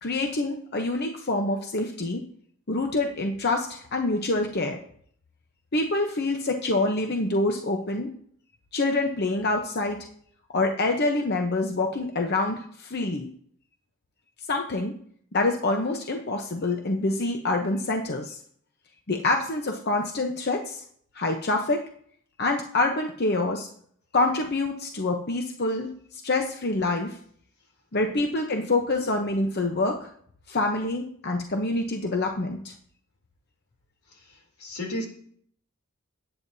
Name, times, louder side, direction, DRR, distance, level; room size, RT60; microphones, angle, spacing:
voice 1, 0.0-2.3 2.7-4.8 5.7-8.1 8.7-10.1 10.5-13.3 14.5-15.0 15.3-18.4 19.1-20.8 21.1-21.9 22.4-23.7 24.1-27.2 27.9-30.1 30.5-32.7, left 2 dB, 45° left, 3 dB, 0.8 m, -26 dB
voice 2, 34.1-35.1, left 1 dB, 85° left, 1 dB, 3.1 m, -34 dB
18.0 x 8.9 x 2.7 m, 0.62 s
head